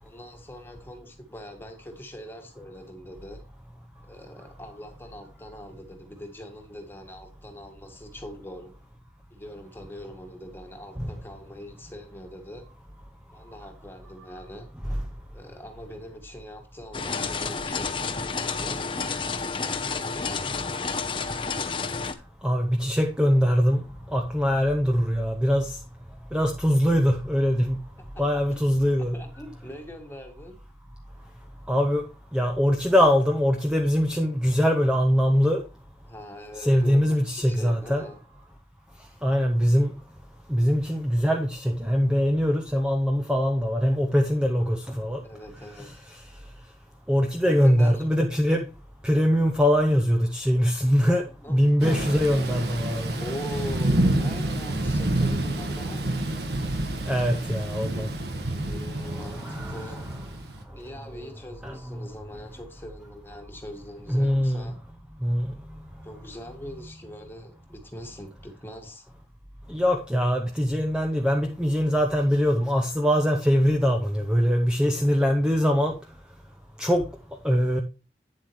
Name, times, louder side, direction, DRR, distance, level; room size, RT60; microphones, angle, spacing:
voice 1, 0.0-3.4 4.0-8.7 9.3-12.6 13.3-14.7 15.3-18.1 18.4-18.8 20.0-20.6 28.1-30.6 36.0-38.2 45.2-46.0 47.4-48.1 51.4-52.0 53.1-56.2 58.6-60.1 60.7-64.8 66.0-69.0, equal, 15° left, 1.8 m, -42 dB
sound 1, 16.9-22.1, left 4 dB, 30° left, 0.7 m, -30 dB
voice 2, 22.4-23.8 24.1-25.8 26.3-27.8 28.2-29.2 31.7-32.0 32.3-35.6 36.6-38.0 39.2-39.9 40.5-45.2 45.8-45.9 47.1-48.7 49.0-53.2 57.1-58.1 59.1-59.9 61.6-61.8 64.1-64.7 65.2-65.5 69.7-76.0 76.8-77.1 77.4-77.8, equal, 5° right, 0.8 m, -22 dB
Thunder / Rain, 51.8-60.6, right 1 dB, 70° right, 1.6 m, -28 dB
9.5 x 7.6 x 3.1 m
head